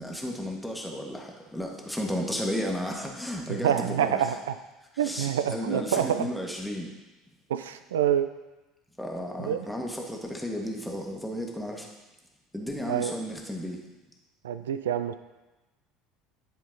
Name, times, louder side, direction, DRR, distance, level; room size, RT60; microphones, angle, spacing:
voice 1, 0.0-4.4 4.9-6.9 9.0-11.9 12.5-13.8, equal, ahead, 0 dB, 1.4 m, -33 dB
voice 2, 3.6-4.5 5.0-6.3 7.5-8.3 9.4-9.7 12.9-13.1 14.4-15.1, right 9 dB, 75° right, 11 dB, 0.3 m, -26 dB
10.5 x 4.5 x 3.9 m, 1.1 s
figure-of-eight pair, 65°, 0 cm